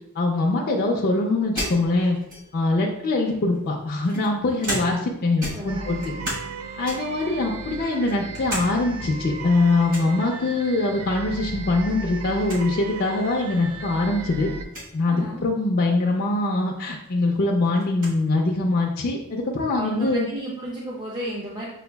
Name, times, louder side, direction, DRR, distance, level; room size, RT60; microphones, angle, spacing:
voice 1, 0.2-2.2 2.5-6.0 6.8-14.5 14.9-20.3, left 2 dB, 45° left, 0 dB, 0.4 m, -23 dB
sound 1, 1.5-2.7 3.5-5.1 5.4-6.5 6.8-7.2 7.7-8.7 9.0-9.1 9.9-10.2 11.6-11.9 12.2-12.3 12.5-12.6 13.5-13.6 14.6-14.9 16.6-16.7 17.0-18.2, equal, 40° right, 1.3 m, -34 dB
voice 2, 5.5-6.4 15.1-15.5 19.7-21.7, right 1 dB, 20° right, -5 dB, 0.5 m, -33 dB
sound 2, 5.7-14.7, right 4 dB, 70° right, 0.4 m, -36 dB
6.8 x 2.3 x 2.2 m, 0.80 s
head